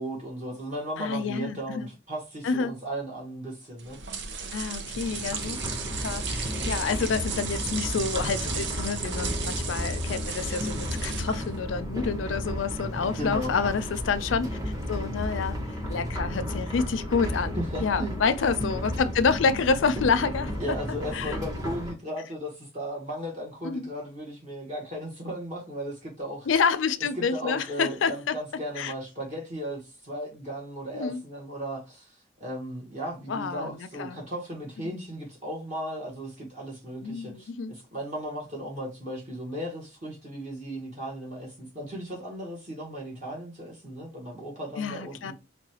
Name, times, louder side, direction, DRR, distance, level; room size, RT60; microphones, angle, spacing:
voice 1, 0.0-4.0 13.2-13.6 17.5-18.2 20.6-26.5 27.2-45.3, equal, 40° right, 1.1 m, -36 dB
voice 2, 1.0-1.9 2.4-2.7 4.5-5.6 5.9-14.6 14.9-15.6 15.9-20.5 21.1-21.4 23.6-23.9 26.5-28.3 28.8-28.9 30.9-31.2 33.3-34.2 34.8-35.0 37.0-37.7 44.8-45.3, left 5 dB, 85° left, 0.4 m, -28 dB
sound 1, 3.8-11.6, right 5 dB, 65° right, 0.6 m, -35 dB
sound 2, 4.9-21.9, equal, 20° right, 0.7 m, -33 dB
4.7 x 2.2 x 2.8 m
head